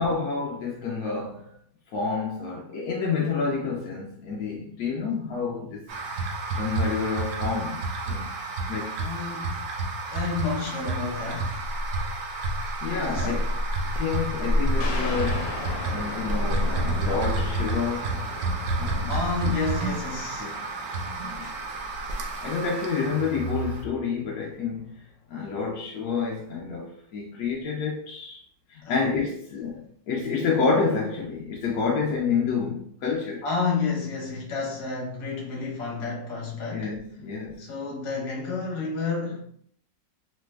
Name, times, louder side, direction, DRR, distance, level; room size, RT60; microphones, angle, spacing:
voice 1, 0.0-1.5 1.9-5.8 6.5-8.3 8.7-9.0 12.8-13.6 13.9-15.6 15.9-18.2 18.8-19.1 20.4-20.5 21.2-21.5 22.4-28.4 28.7-33.4 36.7-37.6, left 5 dB, 70° left, 0.9 m, -29 dB
sound 1, 5.9-23.8, right 2 dB, 70° right, 0.7 m, -29 dB
voice 2, 9.0-9.7 10.1-11.6 12.9-13.4 19.1-20.5 28.8-29.0 33.4-36.9 37.6-39.4, left 4 dB, 55° left, 1.2 m, -30 dB
sound 2, 14.8-24.0, left 3 dB, 90° left, 1.3 m, -39 dB
3.2 x 2.1 x 3.2 m
omnidirectional pair, 2.0 m